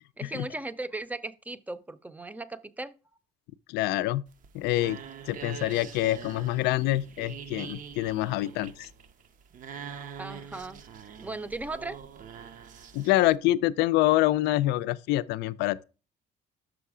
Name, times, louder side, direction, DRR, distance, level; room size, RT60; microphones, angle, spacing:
voice 1, 0.2-2.9 10.2-10.8 11.2-12.0, right 2 dB, 10° right, 0.5 m, -37 dB
voice 2, 3.7-4.2 4.5-5.0 5.3-8.9 12.9-15.8, left 16 dB, 90° left, 0.4 m, -26 dB
sound 1, 4.3-13.4, right 7 dB, 50° right, 0.6 m, -44 dB
6.2 x 5.6 x 4.8 m
cardioid pair, 110°, 17 cm